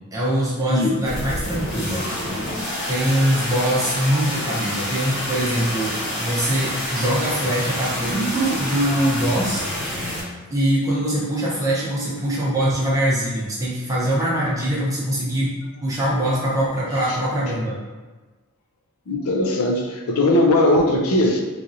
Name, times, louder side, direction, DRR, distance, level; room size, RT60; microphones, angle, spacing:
voice 1, 0.1-2.0 2.9-9.7 10.0-17.8, right 1 dB, 15° right, -7 dB, 0.6 m, -23 dB
sound 1, 1.0-10.2, left 1 dB, 55° left, 1.1 m, -28 dB
voice 2, 19.1-21.4, left 1 dB, 85° left, 2 dB, 0.5 m, -19 dB
3.1 x 2.6 x 2.6 m, 1.3 s
head